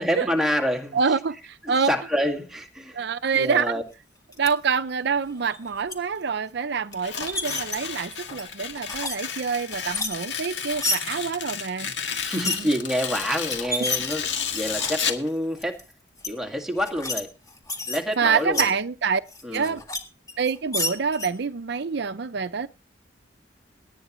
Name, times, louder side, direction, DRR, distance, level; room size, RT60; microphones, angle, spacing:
voice 1, 0.0-1.0 1.6-3.0 3.3-3.8 11.1-11.2 11.8-14.3 14.5-15.8 16.3-17.3 17.9-18.7 19.4-19.8, equal, ahead, 2.1 m, -27 dB
voice 2, 0.9-1.9 2.9-3.7 4.4-11.9 12.3-12.7 18.2-19.2 19.5-19.8 20.4-22.7, right 5 dB, 65° right, 0.5 m, -26 dB
sound 1, 4.3-4.5 5.4-5.9 6.9-7.8 8.2-9.2 9.5-11.0 12.2-12.6 13.2-13.3 13.5-15.1 15.6-15.8 16.2-16.3 16.7-17.2 17.5-18.7 19.3-20.0 20.3-21.3, left 2 dB, 20° left, 1.9 m, -30 dB
Tearing, 7.0-15.3, left 7 dB, 70° left, 1.9 m, -32 dB
18.5 x 9.9 x 3.1 m
head